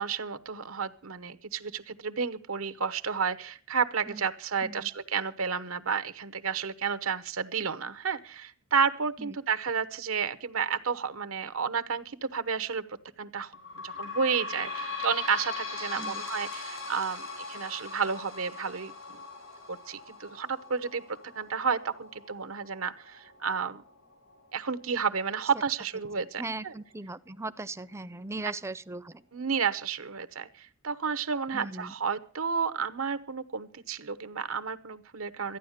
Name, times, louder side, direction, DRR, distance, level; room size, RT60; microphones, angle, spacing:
voice 1, 0.0-13.5 13.8-19.2 19.7-23.8 24.5-26.7 29.3-35.6, right 6 dB, 85° right, 12 dB, 1.0 m, -31 dB
sound 1, 13.5-26.7 27.3-27.4 27.6-27.7 28.5-28.6, left 4 dB, 80° left, 4.5 m, -41 dB
voice 2, 26.4-29.2 31.5-31.9, right 2 dB, 15° right, 14 dB, 0.5 m, -38 dB
14.0 x 10.0 x 6.5 m, 0.42 s
head